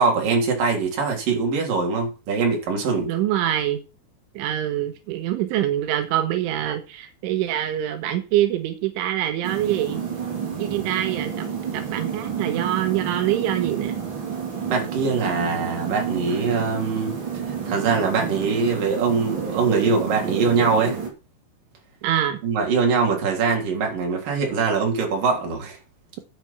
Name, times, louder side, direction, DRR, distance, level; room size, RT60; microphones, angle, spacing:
voice 1, 0.0-3.1 14.7-17.1 17.6-21.0 22.4-25.8, right 4 dB, 50° right, 4.9 m, -22 dB
voice 2, 3.1-3.8 4.4-10.0 10.6-11.5 11.7-14.0 22.0-22.4, right 12 dB, 85° right, 3.7 m, -25 dB
sound 1, 9.4-21.1, right 7 dB, 30° right, 3.1 m, -30 dB
10.5 x 9.0 x 5.9 m
omnidirectional pair, 5.5 m